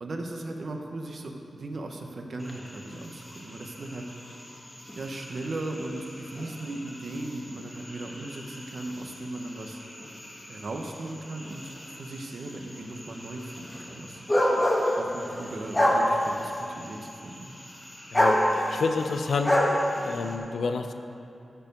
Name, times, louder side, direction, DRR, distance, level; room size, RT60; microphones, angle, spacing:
voice 1, 0.0-4.1 5.0-9.8 10.5-14.2 15.0-17.5, right 2 dB, 50° right, 3 dB, 0.8 m, -37 dB
sound 1, 2.4-20.4, equal, 10° left, 1.0 m, -30 dB
voice 2, 18.1-19.6 20.0-20.9, left 4 dB, 80° left, 7 dB, 0.5 m, -29 dB
13.5 x 4.6 x 5.1 m, 2.7 s
wide cardioid pair, 175°, 0 cm